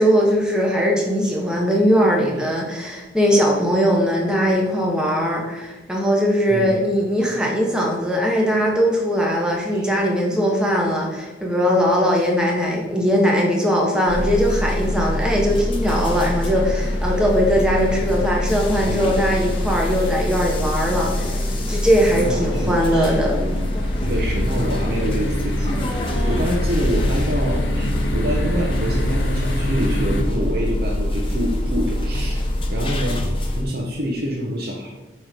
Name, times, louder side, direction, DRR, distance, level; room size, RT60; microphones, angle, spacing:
voice 1, 0.0-21.4 21.7-23.4, equal, 5° right, -2 dB, 1.0 m, -20 dB
sound 1, 14.1-33.6, left 1 dB, 30° left, 0.8 m, -24 dB
sound 2, 16.2-30.2, equal, 80° left, 1.0 m, -30 dB
voice 2, 18.8-19.5 22.1-23.7 24.0-32.4 32.7-33.2 33.6-34.9, equal, 55° right, -3 dB, 1.0 m, -27 dB
7.9 x 3.2 x 5.1 m, 1.1 s
head